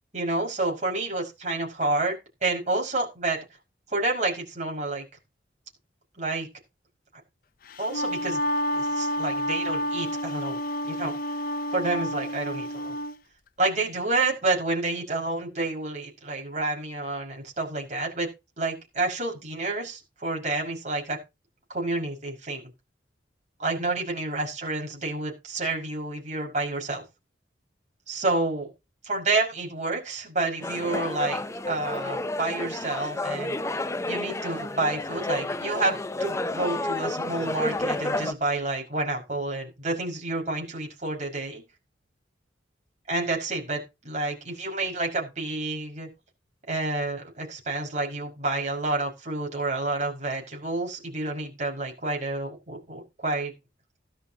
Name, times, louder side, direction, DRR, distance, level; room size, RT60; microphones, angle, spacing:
voice 1, 0.1-3.4 3.9-5.0 6.2-6.5 7.8-8.4 8.7-10.6 10.9-11.2 11.7-13.0 13.6-18.3 18.6-21.2 21.7-22.6 23.6-27.0 28.1-28.7 29.0-33.6 34.1-41.6 43.1-46.1 46.7-53.5, right 2 dB, 40° right, 0 dB, 5.7 m, -29 dB
Wind instrument woodwind instrument, 7.7-13.1, equal, 50° left, 0.7 m, -29 dB
sound 1, 30.6-38.3, left 2 dB, 15° left, 0.6 m, -30 dB
16.0 x 12.5 x 2.9 m, 0.26 s
head